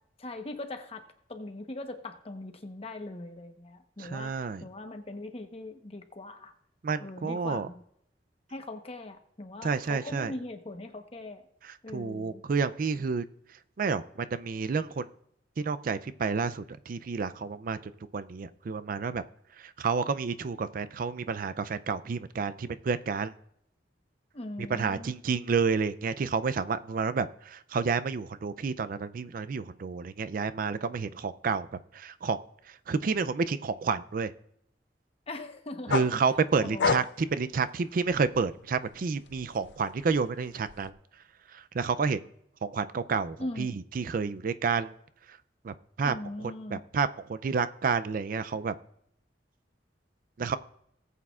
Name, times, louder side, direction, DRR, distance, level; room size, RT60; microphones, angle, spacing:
voice 1, 0.2-6.5 7.0-7.8 8.5-11.4 11.8-12.4 24.3-25.1 35.3-36.1 36.6-36.9 43.4-43.8 46.0-46.8, left 2 dB, 35° left, 6 dB, 1.0 m, -40 dB
voice 2, 4.0-4.6 6.8-7.7 9.6-10.3 11.6-13.2 13.8-15.1 15.6-17.8 18.1-19.2 19.6-23.3 24.7-31.7 31.9-32.4 32.7-34.3 35.9-40.9 41.5-42.2 42.6-44.9 45.3-45.4 45.6-46.1 46.4-48.7 50.4-50.6, right 5 dB, 50° right, 13 dB, 0.4 m, -30 dB
sound 1, 35.9-38.5 38.9-40.9, left 5 dB, 75° left, 0.5 m, -32 dB
18.5 x 8.3 x 2.4 m, 0.72 s
head